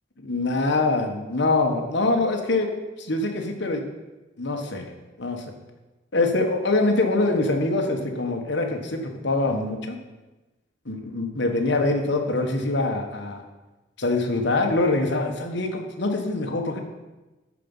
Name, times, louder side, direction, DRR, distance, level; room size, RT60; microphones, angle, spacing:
voice 1, 0.2-2.7 3.0-3.9 4.4-4.9 5.2-5.4 6.1-10.0 10.9-13.4 14.0-16.8, left 2 dB, 65° left, 3 dB, 1.5 m, -24 dB
13.0 x 5.3 x 5.6 m, 1.1 s
head